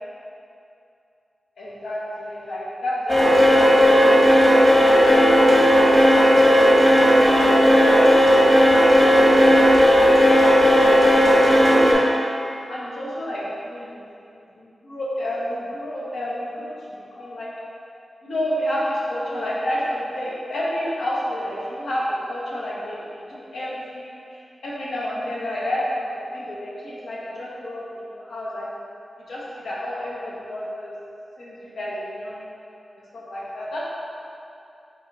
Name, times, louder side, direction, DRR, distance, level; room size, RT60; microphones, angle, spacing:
voice 1, 1.6-5.3 5.7-11.6 12.7-13.4 13.7-13.8 14.3-17.5 18.2-28.8 29.3-30.9 31.4-32.5 33.0-33.8, left 1 dB, 90° left, -6 dB, 0.8 m, -30 dB
sound 1, 3.1-11.9, equal, 15° left, 1.0 m, -14 dB
4.1 x 2.6 x 3.9 m, 2.6 s
wide cardioid pair, 75°, 0 cm